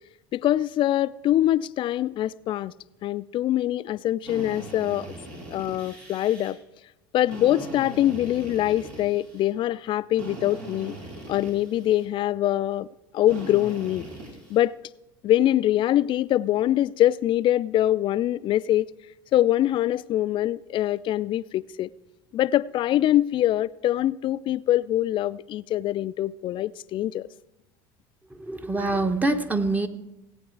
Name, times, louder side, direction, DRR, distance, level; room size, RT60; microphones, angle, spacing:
voice 1, 0.3-2.7 3.0-5.1 5.5-6.6 7.1-10.9 11.3-12.9 13.1-14.1 14.5-14.7 15.2-18.9 19.3-21.9 22.3-27.3, left 13 dB, 50° left, 0.4 m, -24 dB
Drill, 4.2-6.5 7.2-9.5 10.2-12.1 13.3-14.6, right 1 dB, 75° right, 3.6 m, -40 dB
voice 2, 28.3-29.9, right 2 dB, 15° right, 1.0 m, -25 dB
17.5 x 8.8 x 4.6 m
hypercardioid pair, 75°, 11 cm